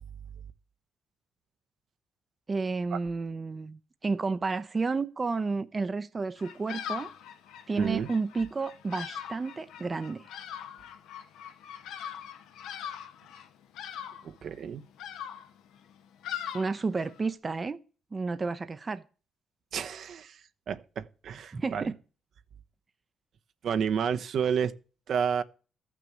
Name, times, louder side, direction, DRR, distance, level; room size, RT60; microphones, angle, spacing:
voice 1, 2.5-7.1 7.7-10.2 16.5-17.8 18.1-19.0 21.5-21.9, right 4 dB, 30° right, 0.7 m, -31 dB
Bird vocalization bird call bird song, 6.4-17.3, left 9 dB, 90° left, 1.2 m, -42 dB
voice 2, 7.8-8.1 14.2-14.8 19.7-21.9 23.6-24.7 25.1-25.4, right 7 dB, 65° right, 0.9 m, -30 dB
13.5 x 6.2 x 7.8 m
cardioid pair, 90°, 0 cm